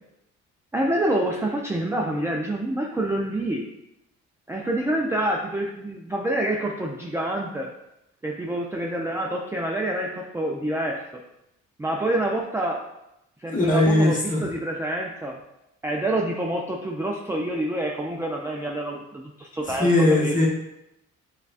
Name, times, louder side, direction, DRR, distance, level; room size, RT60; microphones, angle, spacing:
voice 1, 0.7-3.6 4.5-7.7 8.2-11.1 11.8-12.8 13.4-15.4 15.8-20.4, right 1 dB, 10° right, -1 dB, 0.3 m, -27 dB
voice 2, 13.5-14.4 19.8-20.5, left 2 dB, 25° left, -2 dB, 1.0 m, -19 dB
6.4 x 2.3 x 2.4 m, 0.86 s
cardioid pair, 90°, 30 cm